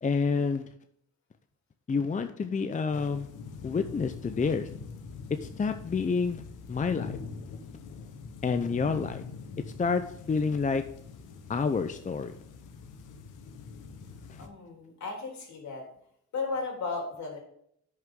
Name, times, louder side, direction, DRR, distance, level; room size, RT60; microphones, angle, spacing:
voice 1, 0.0-0.6 1.9-3.3 3.6-4.7 5.4-6.4 6.7-7.2 8.4-9.2 9.8-10.8 11.5-12.3 14.3-14.5, left 5 dB, 25° left, 8 dB, 0.6 m, -28 dB
sound 1, 2.9-14.5, left 5 dB, 90° left, 1.3 m, -43 dB
voice 2, 14.4-15.8 16.3-17.4, left 4 dB, 65° left, 1 dB, 3.4 m, -35 dB
10.5 x 6.4 x 3.7 m, 0.70 s
cardioid pair, 90°, 30 cm